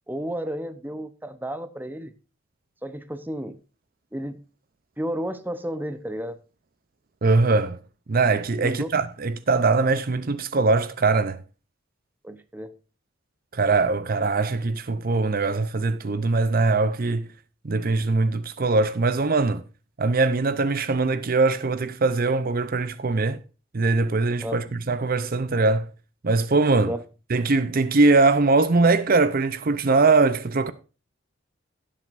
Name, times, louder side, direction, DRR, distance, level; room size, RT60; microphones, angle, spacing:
voice 1, 0.1-2.1 2.8-3.6 4.1-4.4 5.0-6.4 8.6-8.9 12.2-12.8 24.4-24.5 26.9-27.0, equal, 10° right, 0.8 m, -32 dB
voice 2, 7.2-7.8 8.1-11.4 13.5-17.3 17.6-19.6 20.0-23.4 23.7-25.9 26.2-26.9 27.3-30.7, right 3 dB, 45° right, 0.6 m, -21 dB
17.0 x 7.6 x 2.6 m
head